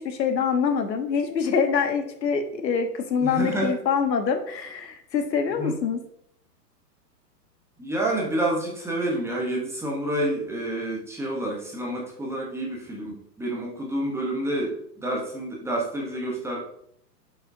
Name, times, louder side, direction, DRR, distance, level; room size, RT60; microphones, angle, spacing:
voice 1, 0.0-6.0, left 6 dB, 80° left, 7 dB, 1.2 m, -25 dB
voice 2, 3.2-3.8 5.6-5.8 7.8-16.6, right 1 dB, 5° right, -2 dB, 0.9 m, -28 dB
7.6 x 5.0 x 2.7 m, 0.70 s
hypercardioid pair, 130°, 50 cm